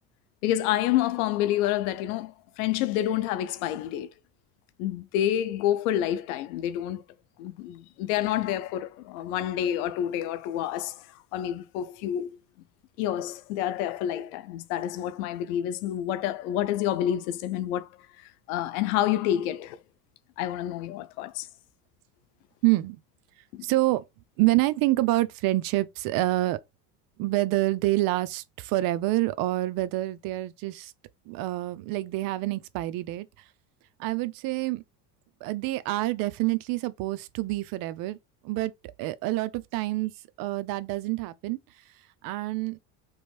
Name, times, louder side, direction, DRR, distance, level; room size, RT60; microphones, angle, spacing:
voice 1, 0.4-4.1 4.8-7.0 7.4-11.1 11.3-12.3 13.0-17.9 18.2-19.8 20.4-21.5 23.5-23.7, left 12 dB, 85° left, 0.6 m, -28 dB
voice 2, 22.6-23.0 23.6-24.0 24.4-26.6 27.2-30.9 31.3-33.3 34.0-34.8 35.4-38.2 38.4-38.7 39.0-40.1 40.4-41.6 42.2-42.8, right 18 dB, 55° right, 0.5 m, -27 dB
3.1 x 2.6 x 3.0 m
cardioid pair, 130°, 42 cm